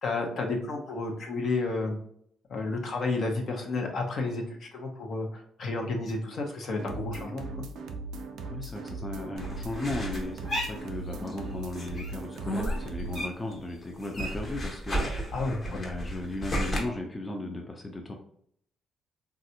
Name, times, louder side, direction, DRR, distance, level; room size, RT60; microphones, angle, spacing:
voice 1, 0.0-2.0 2.5-7.5 15.3-15.8, left 3 dB, 60° left, 2 dB, 0.8 m, -31 dB
sound 1, 6.8-13.3, right 3 dB, 80° right, 0.5 m, -39 dB
voice 2, 8.5-18.1, left 2 dB, 20° left, 2 dB, 0.5 m, -36 dB
sound 2, 9.4-11.4 11.7-13.6 13.8-16.8, equal, 35° left, 1.0 m, -33 dB
3.2 x 2.5 x 2.8 m, 0.68 s
cardioid pair, 90°, 0 cm